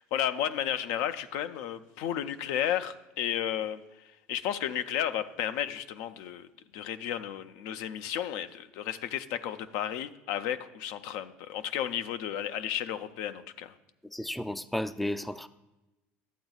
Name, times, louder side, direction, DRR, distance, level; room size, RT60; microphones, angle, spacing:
voice 1, 0.0-6.5 6.7-13.7, left 10 dB, 75° left, 11 dB, 0.4 m, -33 dB
voice 2, 14.0-15.5, left 1 dB, ahead, 13 dB, 0.3 m, -33 dB
12.0 x 7.9 x 2.3 m, 1.0 s
supercardioid pair, 95°, 5 cm